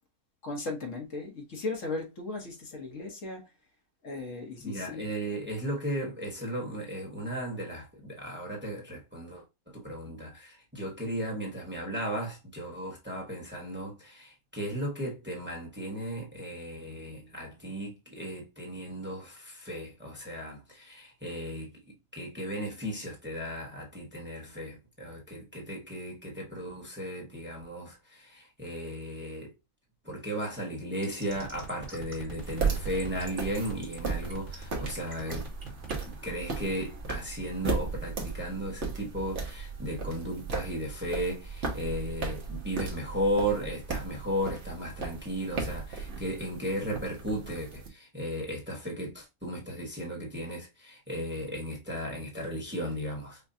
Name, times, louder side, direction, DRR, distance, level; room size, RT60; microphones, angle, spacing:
voice 1, 0.4-3.4 4.0-5.0, left 3 dB, 60° left, 1.5 m, -37 dB
voice 2, 4.6-21.7 22.1-29.5 30.0-35.5 35.8-53.4, equal, 10° right, 1.3 m, -35 dB
sound 1, 31.0-36.1, right 5 dB, 35° right, 1.6 m, -44 dB
sound 2, 32.4-47.9, right 4 dB, 55° right, 1.3 m, -36 dB
5.7 x 2.3 x 2.7 m
omnidirectional pair, 1.5 m